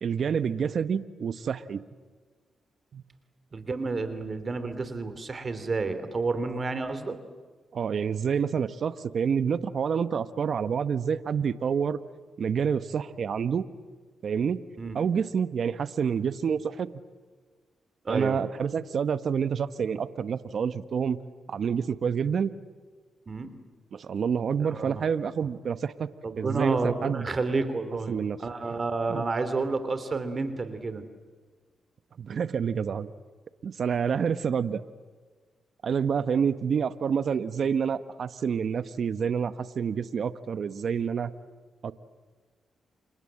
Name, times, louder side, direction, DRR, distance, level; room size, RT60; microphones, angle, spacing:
voice 1, 0.0-1.8 2.9-3.0 7.7-12.0 12.4-13.6 14.2-14.6 14.9-16.9 18.1-21.2 21.5-22.5 23.9-26.1 26.4-27.3 28.1-28.4 29.1-29.2 32.2-33.1 33.6-34.8 35.8-41.3 41.8-41.9, right 7 dB, 60° right, 14 dB, 1.0 m, -28 dB
voice 2, 3.5-7.2 14.8-15.0 18.1-18.4 23.3-23.5 24.6-25.1 26.2-31.0, right 3 dB, 40° right, 10 dB, 3.5 m, -30 dB
29.5 x 26.0 x 7.8 m, 1.4 s
supercardioid pair, 55°, 0 cm